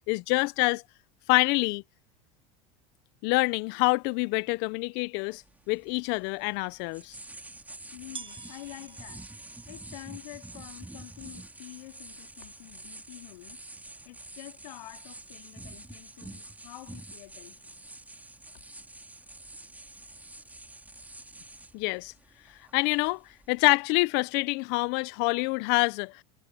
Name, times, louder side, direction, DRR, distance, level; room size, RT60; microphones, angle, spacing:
voice 1, 0.1-0.8 1.3-1.8 3.2-5.4 5.7-7.2 21.7-22.1 22.7-26.2, left 26 dB, 65° left, 1.0 m, -26 dB
sound 1, 4.2-4.3 5.1-5.2 6.9-7.0 8.1-13.7, right 6 dB, 25° right, 1.6 m, -51 dB
sound 2, 5.3-23.7, right 2 dB, 10° right, 3.6 m, -47 dB
voice 2, 7.9-9.3 9.7-13.6 14.0-17.8, left 19 dB, 80° left, 3.0 m, -47 dB
hypercardioid pair, 95°, 20 cm